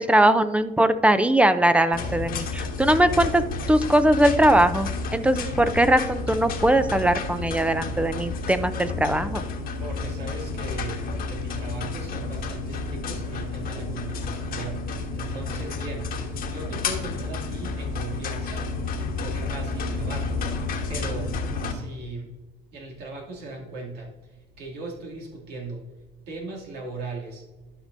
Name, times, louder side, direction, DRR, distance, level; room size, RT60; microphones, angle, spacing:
voice 1, 0.0-3.4 3.7-9.4, right 1 dB, 5° right, 11 dB, 0.5 m, -20 dB
sound 1, 1.9-21.7, left 3 dB, 60° left, 1.2 m, -31 dB
voice 2, 9.8-18.7 19.2-20.5 20.9-21.4 21.6-22.3 22.7-25.8 26.3-27.5, right 2 dB, 75° right, -1 dB, 2.6 m, -38 dB
11.5 x 6.0 x 2.7 m, 1.1 s
cardioid pair, 110°, 17 cm